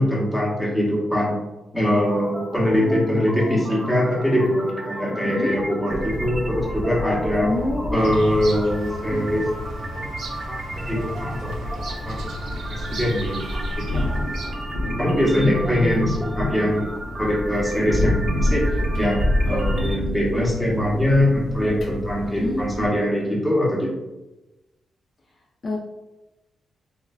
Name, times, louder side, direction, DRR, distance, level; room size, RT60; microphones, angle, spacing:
voice 1, 0.0-1.4 1.7-7.5 7.9-10.0 10.5-14.2 15.0-16.9 17.2-18.7 19.0-23.9, left 1 dB, 5° left, -5 dB, 0.9 m, -23 dB
sound 1, 2.0-20.0, right 1 dB, 25° right, 0.5 m, -36 dB
voice 2, 5.2-5.6 7.4-8.0 15.3-15.7 22.2-22.6 25.6-25.8, left 2 dB, 40° left, -2 dB, 0.4 m, -26 dB
sound 2, 5.9-22.9, left 1 dB, 85° left, 0.6 m, -29 dB
Bird vocalization bird call bird song, 8.0-14.7, right 1 dB, 85° right, 0.5 m, -35 dB
3.7 x 2.1 x 2.2 m, 1.0 s
cardioid pair, 105°, 0 cm